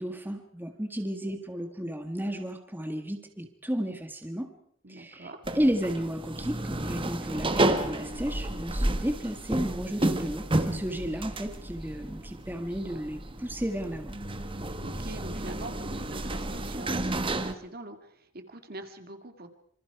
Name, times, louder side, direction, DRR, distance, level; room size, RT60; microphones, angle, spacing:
voice 1, 0.0-4.5 4.9-5.3 5.5-14.1, equal, 10° right, 6 dB, 1.6 m, -33 dB
voice 2, 4.8-5.5 14.5-19.5, right 2 dB, 50° right, 7 dB, 2.3 m, -44 dB
sound 1, 5.4-17.5, right 1 dB, 25° right, 1.5 m, -31 dB
27.0 x 26.0 x 4.8 m, 0.63 s
head